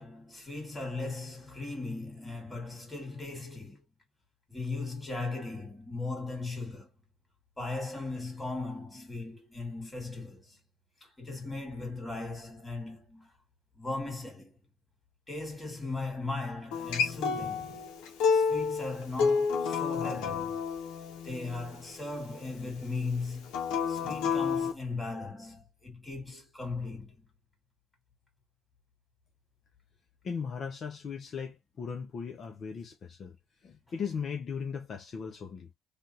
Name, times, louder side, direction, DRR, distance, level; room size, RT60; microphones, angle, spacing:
voice 1, 0.0-3.8 4.5-6.9 7.6-10.6 11.0-13.3 13.8-14.6 15.3-17.9 18.3-20.6 21.2-23.5 23.9-27.2, left 3 dB, 10° left, 2.1 m, -38 dB
Acoustic guitar, 16.7-21.9 23.5-24.7, left 5 dB, 80° left, 0.9 m, -29 dB
voice 2, 30.2-33.4 33.6-35.7, left 6 dB, 45° left, 0.6 m, -37 dB
3.3 x 2.4 x 2.8 m
cardioid pair, 100°, 0 cm